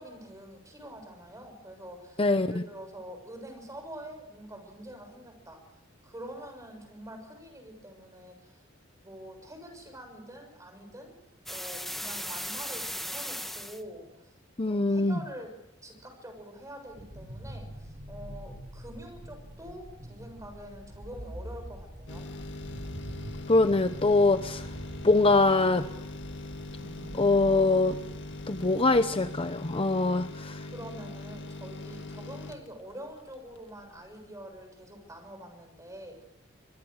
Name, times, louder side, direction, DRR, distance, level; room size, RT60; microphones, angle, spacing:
voice 1, 0.0-2.2 2.5-5.6 6.0-8.6 9.0-11.1 11.5-14.3 14.6-15.5 15.8-22.3 30.7-36.2, right 1 dB, 15° right, 5 dB, 6.7 m, -45 dB
voice 2, 2.2-2.5 14.6-15.2 23.5-24.7 25.0-25.9 27.1-28.0 28.5-30.6, left 2 dB, 30° left, 10 dB, 0.8 m, -23 dB
sound 1, 11.5-13.8, equal, ahead, 1.3 m, -36 dB
cave amb, 16.9-29.3, equal, 50° right, 6.3 m, -45 dB
sound 2, 22.1-33.7 34.0-34.1, left 2 dB, 65° left, 2.0 m, -41 dB
24.5 x 22.5 x 6.6 m, 0.89 s
head